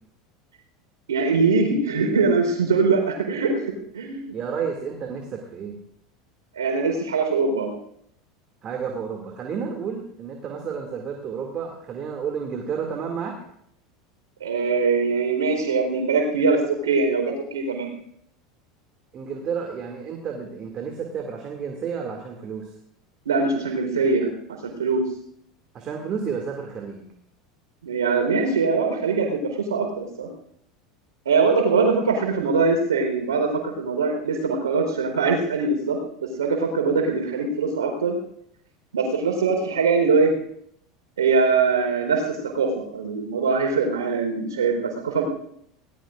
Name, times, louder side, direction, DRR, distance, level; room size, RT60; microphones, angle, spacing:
voice 1, 1.1-4.3 6.6-7.7 14.4-17.9 23.2-24.3 24.6-25.0 27.8-30.3 31.2-38.2 38.9-40.3 41.2-45.2, right 4 dB, 85° right, 2 dB, 4.4 m, -22 dB
voice 2, 4.3-5.8 8.6-13.3 19.1-22.7 25.7-27.1, right 6 dB, 40° right, 1 dB, 2.6 m, -31 dB
22.0 x 18.5 x 2.6 m, 0.71 s
hypercardioid pair, 85°, 2 cm